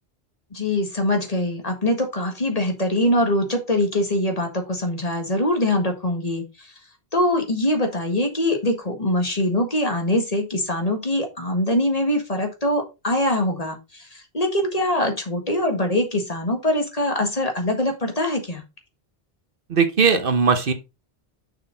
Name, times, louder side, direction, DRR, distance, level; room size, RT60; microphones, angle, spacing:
voice 1, 0.5-6.7 7.1-18.6, left 1 dB, 40° left, 1.8 m, -23 dB
voice 2, 19.7-20.7, right 5 dB, 60° right, 1.1 m, -18 dB
6.6 x 6.0 x 3.9 m
omnidirectional pair, 1.0 m